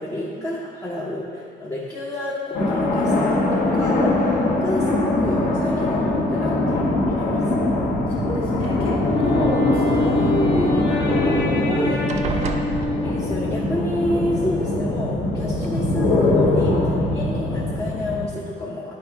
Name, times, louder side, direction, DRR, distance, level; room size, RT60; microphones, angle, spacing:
voice 1, 0.0-6.8 7.2-7.8 9.4-9.5 13.0-18.9, left 1 dB, 15° left, -5 dB, 0.8 m, -30 dB
sound 1, 2.5-18.3, left 2 dB, 50° left, 1.2 m, -22 dB
voice 2, 6.3-7.5 8.1-12.5, left 1 dB, 30° left, -5 dB, 1.8 m, -30 dB
sound 2, 7.1-7.6 8.5-9.3 11.1-11.2 11.5-11.7 12.1-13.5 14.7-14.8 15.3-15.7, right 6 dB, 40° right, 0.5 m, -32 dB
Wind instrument woodwind instrument, 9.0-13.7, left 2 dB, 65° left, 1.2 m, -26 dB
9.6 x 5.3 x 3.5 m, 2.1 s
cardioid pair, 155°, 18 cm